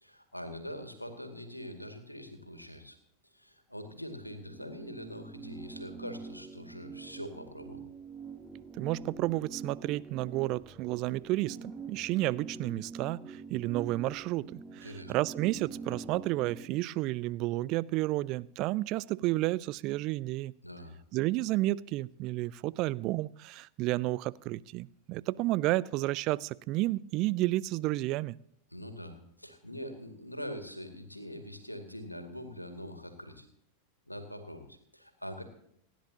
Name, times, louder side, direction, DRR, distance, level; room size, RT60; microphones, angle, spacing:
voice 1, 0.0-3.0 3.3-7.8 14.8-15.1 20.6-21.0 28.7-33.5 34.1-35.4, equal, 90° left, 2.2 m, -43 dB
sound 1, 4.2-16.7, right 4 dB, 10° right, 1.7 m, -45 dB
voice 2, 8.8-11.6 11.9-20.5 21.1-28.4, right 18 dB, 40° right, 0.4 m, -31 dB
28.5 x 10.5 x 2.9 m
figure-of-eight pair, 90°, 0 cm